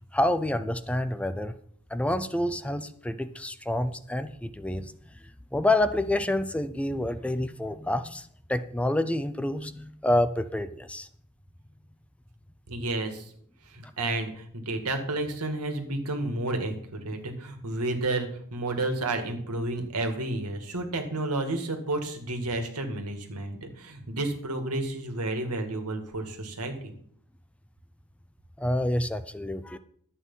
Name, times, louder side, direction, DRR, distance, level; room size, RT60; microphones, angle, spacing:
voice 1, 0.1-1.6 1.9-4.9 5.5-11.1 28.6-29.8, left 1 dB, 5° left, 11 dB, 0.5 m, -28 dB
voice 2, 12.7-13.3 13.7-26.9, right 2 dB, 85° right, 5 dB, 2.0 m, -31 dB
11.5 x 8.3 x 5.5 m, 0.62 s
head